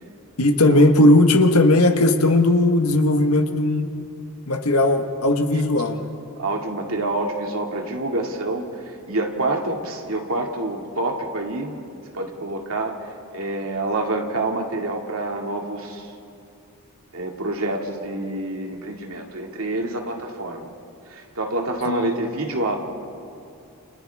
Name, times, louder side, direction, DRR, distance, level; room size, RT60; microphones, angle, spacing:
voice 1, 0.4-3.9 4.5-6.0 21.9-22.1, left 1 dB, 80° left, 6 dB, 1.5 m, -17 dB
voice 2, 6.4-11.8 12.1-16.1 17.1-20.7 21.1-22.8, right 2 dB, 70° right, 1 dB, 2.4 m, -27 dB
30.0 x 29.0 x 3.6 m, 2.5 s
head